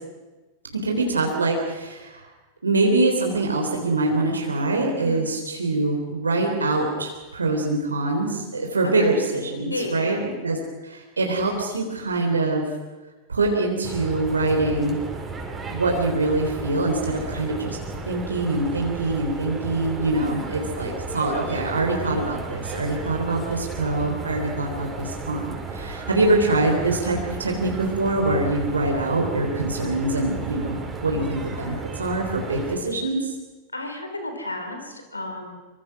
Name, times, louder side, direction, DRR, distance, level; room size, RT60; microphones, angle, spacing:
voice 1, 0.7-2.3 2.6-10.6 10.8-12.6 13.3-15.0 15.7-17.8 18.1-33.3, right 2 dB, 75° right, 1 dB, 3.7 m, -24 dB
voice 2, 9.7-10.3 20.1-20.4 26.1-26.2 31.1-31.5 33.7-35.6, left 2 dB, 80° left, 6 dB, 4.1 m, -33 dB
sound 1, 13.8-32.8, right 3 dB, 15° right, 5.3 m, -34 dB
26.0 x 24.5 x 6.3 m, 1.2 s
figure-of-eight pair, 90°, 0 cm